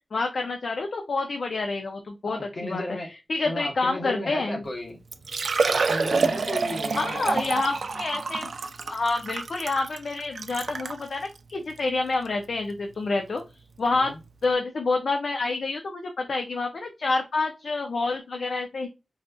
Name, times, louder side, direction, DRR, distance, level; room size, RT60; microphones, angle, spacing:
voice 1, 0.1-2.8 3.3-4.6 6.9-8.5 8.9-13.4 13.8-14.1 14.4-18.9, left 3 dB, 65° left, 0.5 m, -28 dB
voice 2, 2.3-3.1 3.4-5.0 5.7-7.5 13.9-14.2, left 1 dB, 45° left, 1.0 m, -34 dB
Liquid, 4.7-4.8 5.1-11.0 11.7-11.8 12.2-12.3 14.0-14.1 14.2-14.3, right 4 dB, 65° right, 0.4 m, -28 dB
4.0 x 2.4 x 2.2 m
wide cardioid pair, 145°, 0 cm